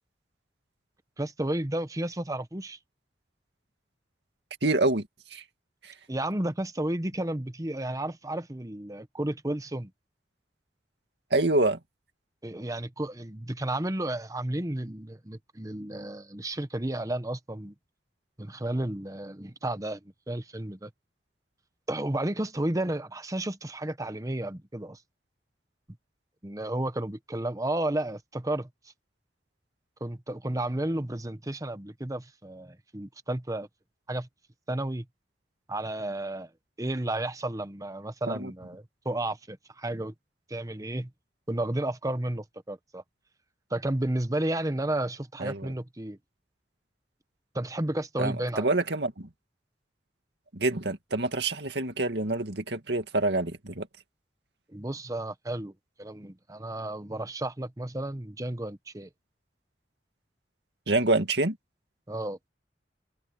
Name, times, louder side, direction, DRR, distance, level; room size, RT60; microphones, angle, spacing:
voice 1, 1.2-2.8 6.1-9.9 12.4-17.7 18.4-20.0 20.3-20.9 21.9-25.0 26.4-28.7 30.0-33.7 34.1-34.3 34.7-35.0 35.7-36.5 36.8-40.1 40.5-41.1 41.5-43.0 43.7-46.2 47.5-48.7 54.7-55.7 56.0-59.1 62.1-62.4, right 1 dB, 20° right, 1.1 m, -32 dB
voice 2, 4.6-5.4 5.8-5.9 11.3-11.8 38.3-38.5 45.4-45.6 48.2-49.3 50.5-53.9 60.9-61.6, right 2 dB, 70° right, 2.3 m, -27 dB
head